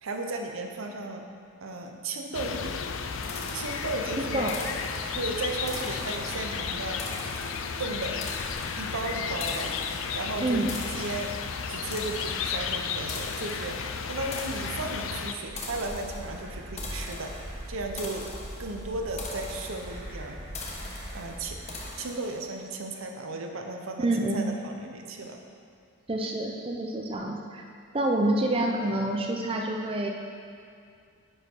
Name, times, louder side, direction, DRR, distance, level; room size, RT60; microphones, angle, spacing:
voice 1, 0.0-1.3 1.6-2.8 3.5-4.6 5.2-7.0 7.8-8.2 8.8-9.8 10.1-11.3 11.7-17.4 17.7-18.3 18.6-20.4 21.1-21.6 22.0-25.4, right 2 dB, 85° right, 3 dB, 0.8 m, -35 dB
sound 1, 2.3-15.3, left 6 dB, 70° left, 0.4 m, -33 dB
sound 2, 3.2-22.6, left 3 dB, 35° left, 0.9 m, -42 dB
voice 2, 10.4-10.8 24.0-24.4 26.1-27.6 27.9-30.1, right 1 dB, 25° right, 1 dB, 0.6 m, -27 dB
sound 3, 15.5-21.9, equal, 50° right, 1.8 m, -41 dB
9.9 x 4.9 x 4.6 m, 2.3 s
head